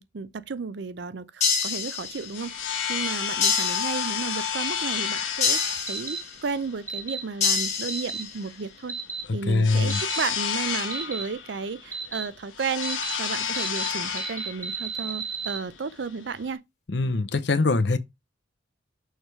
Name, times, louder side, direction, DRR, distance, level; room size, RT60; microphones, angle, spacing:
voice 1, 0.0-8.9 9.3-16.6, right 5 dB, 65° right, 0.5 m, -33 dB
sound 1, 1.4-2.5 3.4-4.5 5.4-6.5 7.4-8.4, left 5 dB, 35° left, 1.8 m, -27 dB
sound 2, 2.0-16.6, left 7 dB, 85° left, 1.0 m, -32 dB
sound 3, 5.9-6.2 6.9-7.2 7.9-8.2 8.9-9.2 9.9-10.2 10.9-11.2 11.9-12.2 12.8-13.1 13.5-13.9 14.2-15.6, right 5 dB, 15° right, 1.7 m, -33 dB
voice 2, 9.5-10.0 16.9-18.0, left 3 dB, 60° left, 0.7 m, -22 dB
6.4 x 3.3 x 4.6 m
head